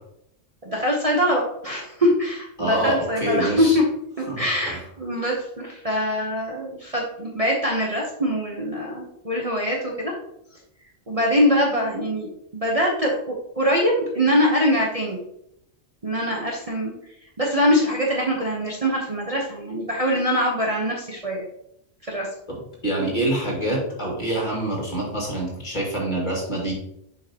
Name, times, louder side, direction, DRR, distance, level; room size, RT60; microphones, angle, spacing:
voice 1, 0.6-3.8 4.2-10.1 11.1-15.2 16.0-16.9 17.4-21.4 22.1-22.3, equal, 30° right, -3 dB, 1.0 m, -23 dB
voice 2, 2.6-3.8 4.3-4.8 22.5-22.6 22.8-26.7, right 1 dB, 40° left, -3 dB, 2.3 m, -26 dB
7.4 x 5.3 x 2.9 m, 0.75 s
omnidirectional pair, 1.3 m